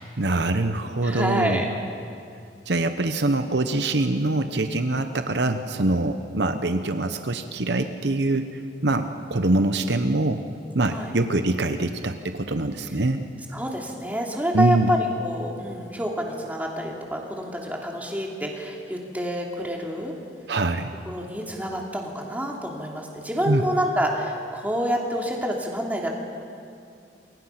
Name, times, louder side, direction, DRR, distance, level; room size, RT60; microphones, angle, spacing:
voice 1, 0.2-1.8 2.7-10.4 10.7-13.2 14.5-14.9 20.5-20.9 23.5-23.6, right 2 dB, 65° right, 8 dB, 1.0 m, -24 dB
voice 2, 1.0-1.6 4.9-5.0 10.8-11.1 13.5-20.2 21.1-26.1, equal, 10° right, -1 dB, 2.9 m, -28 dB
28.0 x 24.0 x 5.9 m, 2.5 s
head